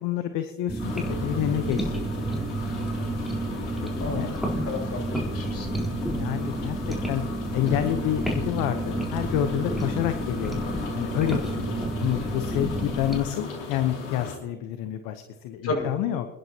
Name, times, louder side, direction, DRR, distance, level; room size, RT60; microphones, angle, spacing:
voice 1, 0.0-2.4 4.0-4.3 6.1-6.8 7.1-7.2 7.5-11.7 12.0-16.3, left 11 dB, 65° left, 7 dB, 1.1 m, -28 dB
sound 1, 0.7-13.2, right 1 dB, ahead, 4.0 m, -30 dB
sound 2, 0.8-14.4, left 4 dB, 80° left, 3.0 m, -37 dB
voice 2, 4.0-4.4 4.6-5.8 12.1-12.3 15.6-15.9, left 3 dB, 40° left, 1 dB, 5.9 m, -33 dB
27.0 x 10.5 x 3.0 m, 1.1 s
hypercardioid pair, 65°, 36 cm